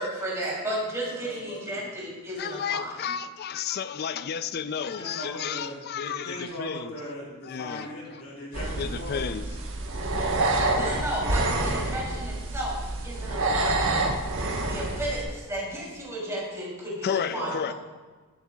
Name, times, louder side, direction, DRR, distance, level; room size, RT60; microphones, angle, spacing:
voice 1, 0.0-3.0 10.7-13.9 14.6-17.7, right 1 dB, 15° right, 3.2 m, -33 dB
voice 2, 1.1-1.9 4.7-9.3 17.2-17.7, equal, 70° left, 3.5 m, -39 dB
voice 3, 2.4-6.9 7.5-8.2 8.8-9.5 17.0-17.7, left 7 dB, 45° left, 0.4 m, -32 dB
sound 1, 8.5-15.2, right 2 dB, 60° right, 1.3 m, -27 dB
14.5 x 10.0 x 2.4 m
head